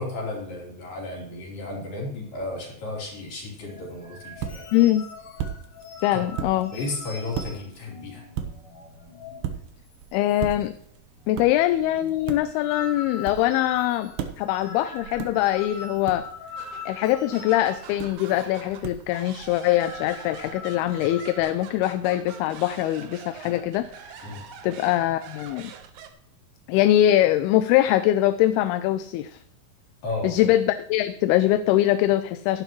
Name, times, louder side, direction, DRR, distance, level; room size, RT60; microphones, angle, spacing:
voice 1, 0.0-4.6 6.1-6.2 6.7-8.2 24.2-24.5 30.0-30.4, left 2 dB, 60° left, -2 dB, 5.0 m, -33 dB
sound 1, 3.6-9.6 9.9-10.0 10.3-10.8 11.1-18.5 18.7-19.0 19.4-21.4, left 4 dB, 45° left, 2.0 m, -43 dB
sound 2, 3.8-20.5, right 9 dB, 85° right, 3.0 m, -39 dB
voice 2, 4.7-5.1 6.0-6.7 10.1-10.7 11.3-14.1 14.4-16.3 16.9-23.9 24.2-24.3 24.6-25.7 26.7-29.4 30.2-32.6, left 13 dB, 85° left, 11 dB, 2.5 m, -22 dB
sound 3, 16.6-26.1, right 8 dB, 70° right, 2.5 m, -44 dB
15.0 x 11.0 x 3.1 m, 0.68 s
omnidirectional pair, 4.5 m